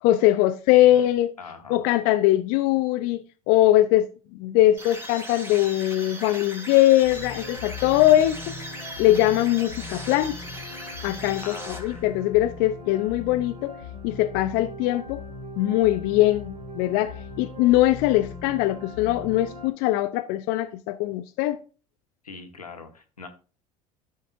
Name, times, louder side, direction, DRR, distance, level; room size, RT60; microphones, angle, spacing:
voice 1, 0.0-1.3 1.7-3.2 3.5-8.4 9.0-10.4 11.0-13.7 14.0-15.2 15.6-21.6, left 14 dB, 55° left, 0.6 m, -21 dB
voice 2, 0.7-1.1 1.4-1.8 11.4-12.0 22.2-23.3, left 4 dB, 90° left, 1.3 m, -41 dB
sound 1, 4.8-12.3, equal, 10° right, 2.8 m, -39 dB
sound 2, 7.0-19.7, left 3 dB, 45° right, 3.5 m, -40 dB
13.5 x 5.5 x 2.5 m
figure-of-eight pair, 70°, 19 cm